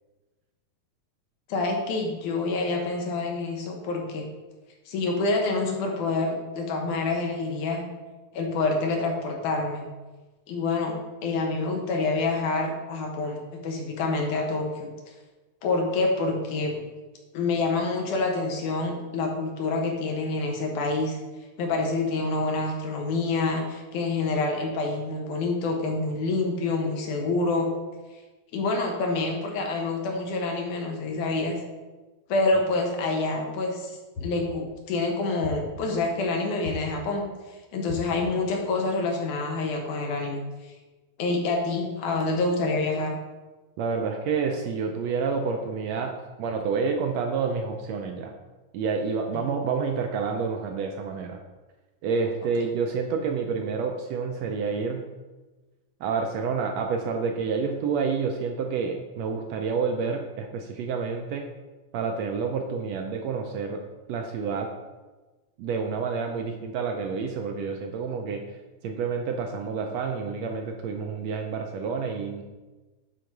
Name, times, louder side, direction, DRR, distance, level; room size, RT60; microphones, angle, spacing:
voice 1, 1.5-4.2 4.9-7.8 8.3-9.8 10.5-10.9 11.2-14.9 15.6-16.8 17.3-21.2 21.6-27.7 28.5-31.6 32.3-33.9 34.2-37.2 37.7-40.4 41.2-43.2, left 3 dB, 80° left, 1 dB, 2.7 m, -27 dB
sound 1, 34.2-34.8 35.4-36.1 36.7-37.3 37.9-38.5, left 4 dB, 60° left, 2.5 m, -38 dB
voice 2, 43.8-48.3 48.7-51.4 52.0-55.1 56.0-61.5 61.9-63.8 64.1-64.7 65.6-68.4 68.8-72.4, right 5 dB, 75° right, 3 dB, 1.6 m, -29 dB
10.0 x 3.9 x 4.6 m, 1.2 s
omnidirectional pair, 3.5 m